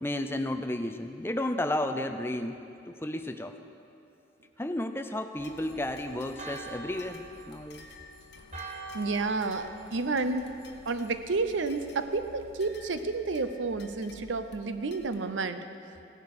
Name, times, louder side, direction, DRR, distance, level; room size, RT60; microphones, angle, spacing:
voice 1, 0.0-2.6 2.9-3.6 4.6-7.9, left 1 dB, 10° left, 7 dB, 0.5 m, -32 dB
sound 1, 5.4-15.2, left 2 dB, 60° left, 1.1 m, -53 dB
Church bell, 5.4-11.1, right 3 dB, 35° right, 1.1 m, -46 dB
voice 2, 8.9-10.5 10.9-16.2, right 3 dB, 80° right, 10 dB, 0.7 m, -31 dB
17.0 x 11.0 x 4.9 m, 2.6 s
head